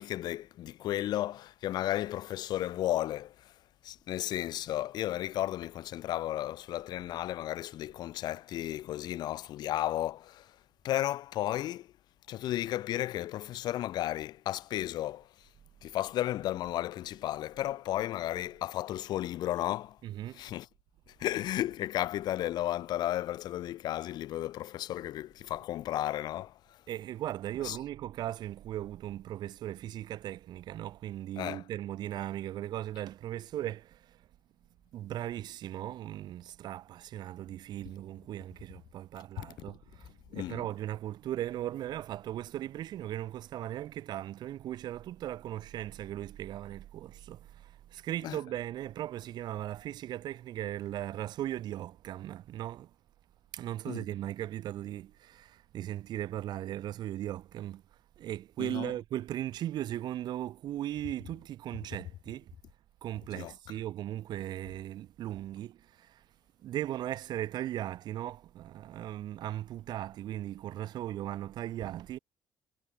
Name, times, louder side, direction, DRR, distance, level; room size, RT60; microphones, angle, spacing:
voice 1, 0.0-3.5 3.8-10.6 10.8-11.9 12.3-15.5 15.8-20.0 20.3-20.7 21.1-26.8 27.6-27.8 31.4-31.6 39.4-39.8 40.3-40.6 48.2-48.4 53.9-54.0 58.6-58.9 63.3-63.5, left 13 dB, 60° left, 0.4 m, -34 dB
voice 2, 20.0-20.4 25.5-25.6 26.9-34.3 34.9-52.9 53.5-57.8 58.2-62.5 63.0-66.2 66.6-72.2, right 12 dB, 65° right, 1.1 m, -38 dB
supercardioid pair, 85°, 8 cm